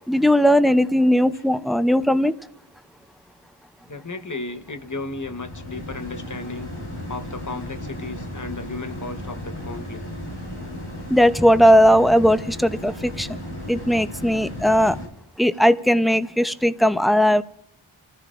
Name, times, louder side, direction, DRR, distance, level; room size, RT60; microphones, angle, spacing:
voice 1, 0.1-2.3 11.1-13.3 13.7-15.0 15.4-17.4, equal, ahead, 11 dB, 0.7 m, -18 dB
sound 1, 3.8-15.1, left 1 dB, 80° left, 3.6 m, -35 dB
voice 2, 3.9-6.7 7.1-10.0, left 3 dB, 40° left, 8 dB, 1.1 m, -34 dB
28.5 x 14.0 x 2.5 m, 0.75 s
wide cardioid pair, 40°, 49 cm